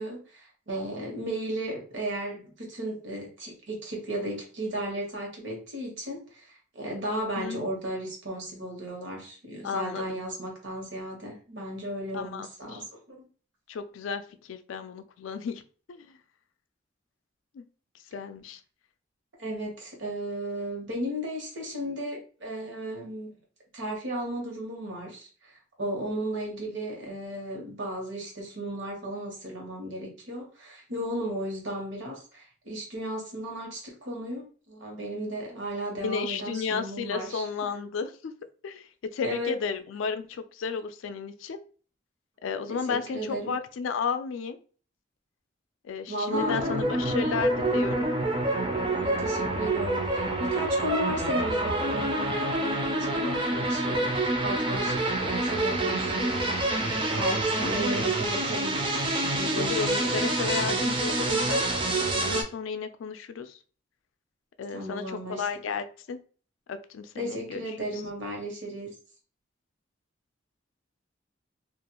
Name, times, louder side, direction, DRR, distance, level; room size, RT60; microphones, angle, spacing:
voice 1, 0.0-13.2 19.4-23.3 23.7-37.5 39.2-39.6 42.7-43.5 46.1-47.1 49.0-54.2 54.4-58.8 59.1-60.8 64.7-65.5 67.2-68.9, right 1 dB, 75° right, 0 dB, 1.1 m, -35 dB
voice 2, 7.4-7.7 9.6-10.2 12.1-12.8 13.7-15.6 15.9-16.2 17.5-17.6 18.1-18.6 36.0-38.3 38.6-41.6 42.4-44.6 45.8-48.1 59.5-61.7 62.1-63.6 64.6-66.2 66.7-67.6 67.9-68.0, left 6 dB, 90° left, 10 dB, 0.3 m, -33 dB
sound 1, 46.3-62.4, right 2 dB, 25° right, 0.4 m, -27 dB
2.4 x 2.3 x 2.9 m, 0.40 s
head